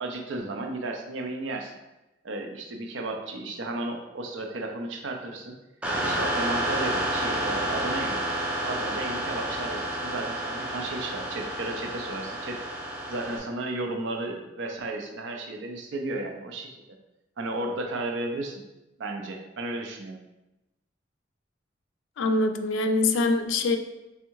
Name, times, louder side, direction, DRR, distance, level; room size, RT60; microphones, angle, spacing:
voice 1, 0.0-1.8 2.2-5.5 6.0-8.2 8.6-12.6 13.1-16.8 17.4-18.6 19.0-20.2, right 2 dB, 85° right, 3 dB, 0.5 m, -34 dB
sound 1, 5.8-13.4, right 1 dB, 5° right, 0.5 m, -30 dB
voice 2, 22.2-23.8, left 3 dB, 80° left, 7 dB, 0.3 m, -24 dB
3.5 x 3.2 x 3.0 m, 0.97 s
head